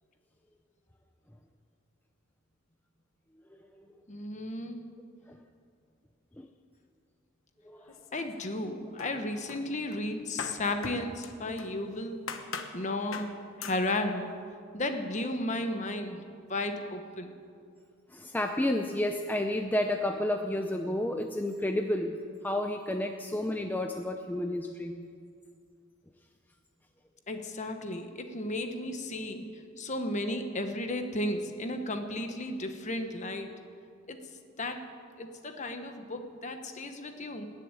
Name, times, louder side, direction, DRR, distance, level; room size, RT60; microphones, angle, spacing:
voice 1, 4.1-4.8 8.1-12.2 12.7-13.3 13.6-14.3 14.7-17.3 27.3-29.5 29.8-33.5 34.1-34.2 34.6-34.8 35.2-37.5, left 1 dB, 35° left, 6 dB, 1.2 m, -34 dB
sound 1, 7.9-8.7 9.0-11.8 12.3-12.8 13.1-13.3 13.6-13.8, left 5 dB, 85° left, 1.1 m, -41 dB
voice 2, 18.1-22.2 22.4-25.0, left 1 dB, 10° left, 4 dB, 0.6 m, -31 dB
20.5 x 7.1 x 9.0 m, 2.3 s
head